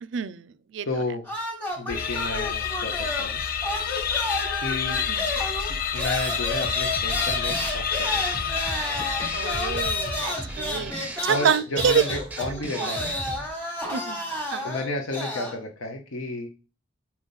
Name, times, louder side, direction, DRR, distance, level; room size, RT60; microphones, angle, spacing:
voice 1, 0.0-0.9 5.1-5.3 9.3-10.9 11.2-12.0 12.8-12.9 13.9-14.2 14.5-14.7, right 7 dB, 65° right, 0.4 m, -27 dB
voice 2, 0.8-1.2 1.8-3.4 4.6-5.0 5.9-8.4 11.3-13.1 14.6-16.5, left 2 dB, 85° left, 0.8 m, -32 dB
sound 1, 1.2-3.4 3.6-15.6, left 1 dB, 10° left, 1.1 m, -31 dB
sound 2, 1.9-10.6, left 7 dB, 45° left, 0.5 m, -29 dB
sound 3, 6.6-13.5, right 2 dB, 10° right, 0.5 m, -37 dB
4.4 x 3.9 x 5.4 m
head